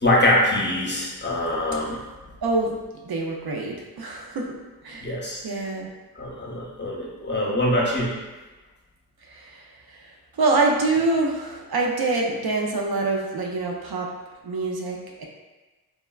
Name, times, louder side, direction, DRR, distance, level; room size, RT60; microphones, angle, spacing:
voice 1, 0.0-2.0 5.0-5.4 6.2-8.2, left 1 dB, 30° left, -4 dB, 0.7 m, -23 dB
voice 2, 2.4-2.7 3.0-4.5 4.8-5.1 5.4-5.9 9.3-14.1 14.4-15.3, right 3 dB, 65° right, 0 dB, 0.5 m, -25 dB
3.5 x 2.0 x 2.3 m, 1.2 s
cardioid pair, 45°, 39 cm